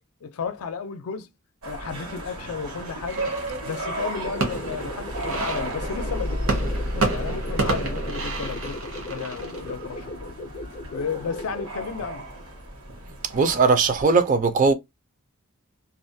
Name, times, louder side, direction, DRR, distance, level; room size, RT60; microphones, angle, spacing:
voice 1, 0.2-1.3 1.6-3.3 3.7-10.3 10.9-12.2, left 6 dB, 85° left, 0.5 m, -33 dB
sound 1, 1.6-14.1, right 1 dB, 85° right, 1.2 m, -33 dB
sound 2, 3.1-13.2, right 3 dB, 65° right, 0.8 m, -32 dB
sound 3, 4.2-11.8, left 2 dB, 30° left, 0.5 m, -39 dB
voice 2, 13.3-14.7, right 4 dB, 35° right, 0.4 m, -19 dB
2.5 x 2.1 x 2.6 m
head